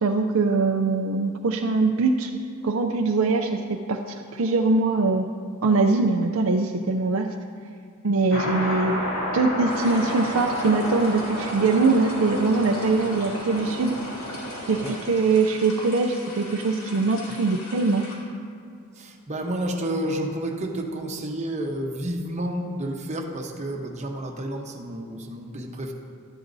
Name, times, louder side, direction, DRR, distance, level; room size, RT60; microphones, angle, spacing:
voice 1, 0.0-2.3 2.6-3.6 3.9-5.2 5.6-7.3 8.0-8.9 9.3-14.0 14.7-18.0, right 3 dB, 65° right, 4 dB, 0.5 m, -22 dB
sound 1, 8.3-15.0, equal, 65° left, 2.8 m, -31 dB
sound 2, 9.7-18.2, left 1 dB, 80° left, 2.2 m, -41 dB
voice 2, 19.0-25.9, right 1 dB, 30° right, 2 dB, 0.9 m, -30 dB
12.5 x 11.0 x 2.7 m, 2.3 s
head